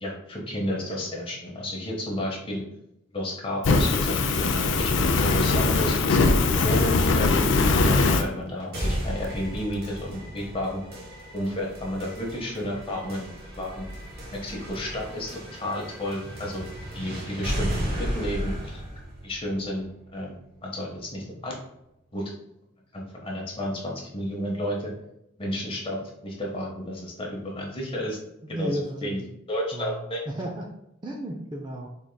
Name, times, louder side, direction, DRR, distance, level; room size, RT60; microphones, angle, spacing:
voice 1, 0.0-2.6 3.1-6.2 6.6-7.5 7.8-10.8 11.3-13.9 14.3-16.6 16.9-17.7 18.0-18.8 19.2-19.8 20.1-21.5 22.1-22.2 22.9-24.9 25.4-26.0 26.2-28.2 28.5-29.2 29.5-30.2, left 1 dB, 25° left, -2 dB, 0.8 m, -32 dB
Fire, 3.6-8.2, left 3 dB, 65° left, 0.4 m, -21 dB
sound 1, 8.7-20.7, equal, 50° right, 1.0 m, -34 dB
voice 2, 28.4-29.3 29.7-30.7 31.0-31.9, right 1 dB, 25° right, 1 dB, 0.3 m, -33 dB
3.7 x 3.5 x 2.2 m, 0.82 s
head